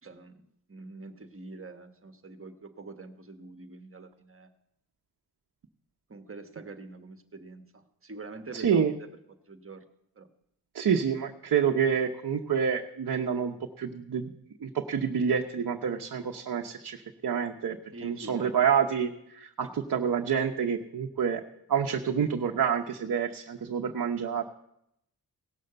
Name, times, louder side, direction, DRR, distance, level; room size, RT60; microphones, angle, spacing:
voice 1, 0.0-4.5 6.1-9.1 9.5-9.8 10.2-10.3 17.9-18.5 19.6-19.7, right 3 dB, 35° right, 7 dB, 1.3 m, -45 dB
voice 2, 8.5-8.9 10.7-14.3 14.6-21.4 21.7-24.6, right 7 dB, 55° right, 2 dB, 0.9 m, -28 dB
17.5 x 6.4 x 6.8 m, 0.78 s
cardioid pair, 70°, 40 cm